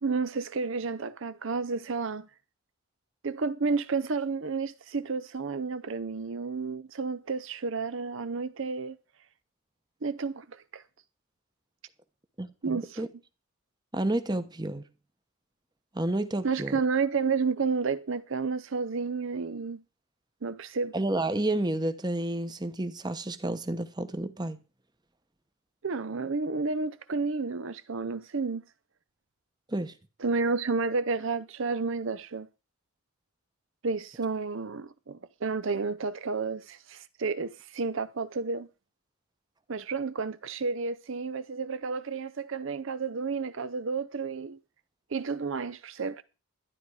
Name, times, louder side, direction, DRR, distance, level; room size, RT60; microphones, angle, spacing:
voice 1, 0.0-2.3 3.2-9.0 10.0-10.8 12.6-13.1 16.4-19.8 20.4-20.9 25.8-28.6 30.2-32.5 33.8-38.7 39.7-44.6 45.1-46.2, right 4 dB, 60° right, 0.6 m, -31 dB
voice 2, 12.4-13.1 13.9-14.8 15.9-16.7 20.9-24.6 29.7-29.9, right 1 dB, 20° right, 0.9 m, -30 dB
12.0 x 10.5 x 4.8 m
head